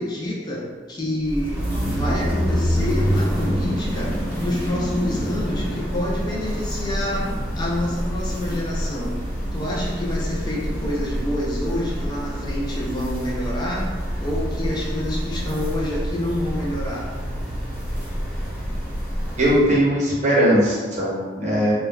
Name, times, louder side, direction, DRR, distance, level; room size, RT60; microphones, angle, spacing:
voice 1, 0.0-17.1, left 1 dB, 25° left, -4 dB, 0.3 m, -28 dB
sound 1, 1.2-19.8, equal, 15° right, 1.0 m, -27 dB
voice 2, 19.4-21.7, equal, 40° right, -6 dB, 0.7 m, -19 dB
3.2 x 2.2 x 2.2 m, 1.5 s
head